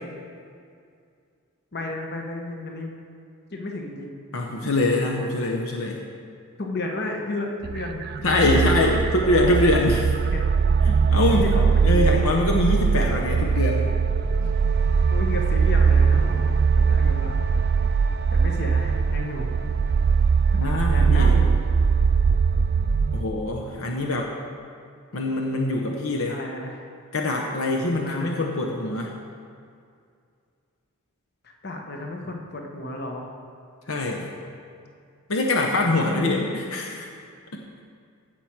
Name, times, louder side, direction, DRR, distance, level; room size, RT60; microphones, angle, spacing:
voice 1, 1.7-2.9 3.5-4.1 6.6-8.9 10.3-10.5 11.3-12.1 14.4-14.5 15.1-17.3 18.3-19.5 20.9-21.5 26.3-26.8 28.0-28.4 31.6-33.3 36.0-36.5, left 2 dB, 45° left, 1 dB, 1.1 m, -33 dB
voice 2, 4.3-6.0 8.2-10.1 10.9-11.4 11.8-13.9 20.5-21.4 23.1-24.3 25.1-26.4 27.1-29.1 33.9-34.3 35.3-37.1, left 2 dB, 70° left, 0 dB, 0.8 m, -23 dB
sound 1, 7.6-23.2, right 5 dB, 45° right, 0.3 m, -21 dB
16.0 x 6.1 x 4.6 m, 2.3 s
head